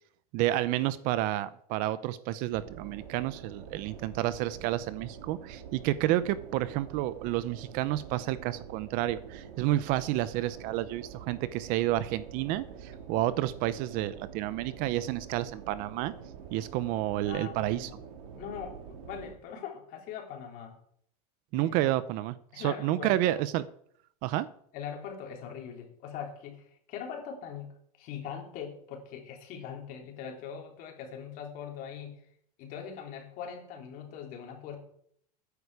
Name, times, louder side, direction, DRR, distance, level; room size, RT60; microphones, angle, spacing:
voice 1, 0.3-16.1 16.5-17.9 21.5-23.7 24.2-24.5, right 14 dB, 45° right, 16 dB, 0.7 m, -30 dB
sound 1, 2.5-19.3, right 7 dB, 80° right, 2.4 m, -46 dB
voice 2, 17.2-18.1 18.3-20.8 21.5-21.9 22.5-23.4 24.7-27.7 28.0-32.2 32.6-34.8, left 7 dB, 45° left, 2 dB, 3.5 m, -41 dB
15.0 x 9.9 x 4.8 m, 0.66 s
supercardioid pair, 150°, 20 cm